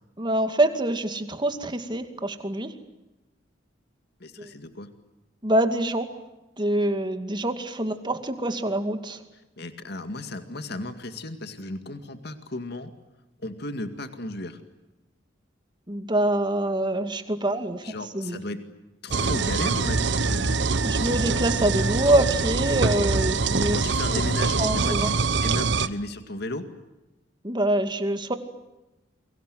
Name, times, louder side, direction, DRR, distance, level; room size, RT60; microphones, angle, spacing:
voice 1, 0.2-2.7 4.4-4.5 5.4-6.1 6.6-9.2 15.9-18.4 20.8-23.8 24.1-24.2 24.6-25.1 27.4-28.4, right 1 dB, 25° right, 8 dB, 2.4 m, -25 dB
voice 2, 4.2-4.9 9.6-12.9 13.4-14.6 17.8-18.6 19.0-20.6 23.7-26.7, left 2 dB, 60° left, 8 dB, 2.2 m, -35 dB
sound 1, 19.1-25.9, right 4 dB, 65° right, 1.1 m, -24 dB
29.0 x 24.0 x 7.8 m, 1.0 s
head